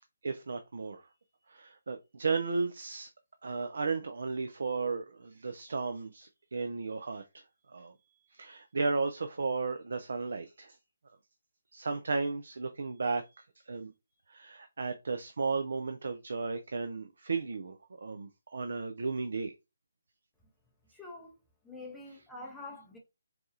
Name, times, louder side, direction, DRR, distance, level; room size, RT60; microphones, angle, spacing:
voice 1, 0.2-1.0 1.5-3.1 3.4-7.2 7.7-7.9 8.3-10.8 11.7-13.2 13.7-13.9 14.3-19.5, right 4 dB, 55° right, 0.4 m, -34 dB
voice 2, 20.9-21.4 21.6-23.0, left 2 dB, 5° left, 0.6 m, -46 dB
4.0 x 2.3 x 2.7 m
figure-of-eight pair, 145°, 0 cm